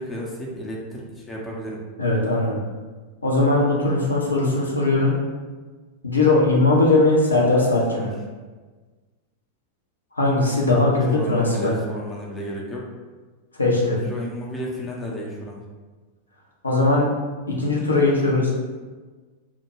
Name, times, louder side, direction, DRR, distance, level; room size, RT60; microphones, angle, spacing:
voice 1, 0.0-1.8 7.9-8.1 11.1-12.8 14.0-15.6, equal, 15° left, -3 dB, 0.5 m, -32 dB
voice 2, 2.0-2.6 3.2-5.1 6.0-8.1 10.2-11.7 13.6-14.0 16.6-17.0 17.5-18.5, left 2 dB, 80° left, -4 dB, 0.5 m, -19 dB
2.2 x 2.1 x 3.1 m, 1.3 s
figure-of-eight pair, 90°, 0 cm